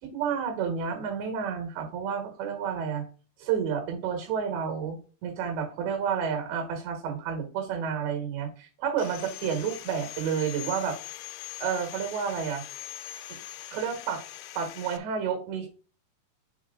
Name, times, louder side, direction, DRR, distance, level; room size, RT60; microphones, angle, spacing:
voice 1, 0.0-3.0 3.4-11.0 11.6-12.6 13.7-14.2 14.6-15.7, right 7 dB, 85° right, 5 dB, 3.7 m, -30 dB
Sawing, 9.0-15.0, left 14 dB, 80° left, 2.3 m, -42 dB
7.2 x 5.1 x 3.6 m, 0.38 s
omnidirectional pair, 4.9 m